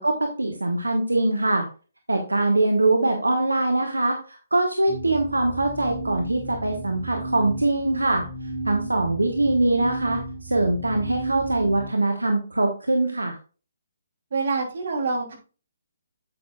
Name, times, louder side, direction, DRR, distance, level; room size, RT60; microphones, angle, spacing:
voice 1, 0.0-1.7 2.1-8.3 8.6-13.4, right 2 dB, 80° right, 3 dB, 1.2 m, -23 dB
sound 1, 4.9-11.9, right 2 dB, 40° right, 3.1 m, -34 dB
voice 2, 14.3-15.4, right 4 dB, 55° right, 0 dB, 3.1 m, -26 dB
8.8 x 8.4 x 2.3 m, 0.36 s
figure-of-eight pair, 135°, 0 cm